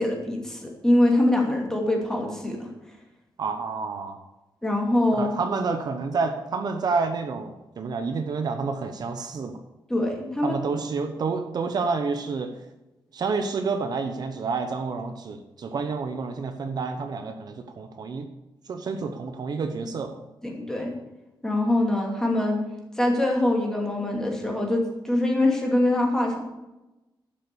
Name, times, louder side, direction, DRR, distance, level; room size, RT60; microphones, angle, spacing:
voice 1, 0.0-2.7 4.6-5.3 9.9-10.6 20.4-20.9 21.4-22.6 23.0-26.4, left 1 dB, 5° left, 0 dB, 2.6 m, -23 dB
voice 2, 3.4-4.2 5.2-9.6 10.4-12.6 13.1-18.3 18.7-20.2, right 4 dB, 50° right, 6 dB, 1.0 m, -29 dB
12.0 x 7.5 x 6.9 m, 0.99 s
wide cardioid pair, 165°, 9 cm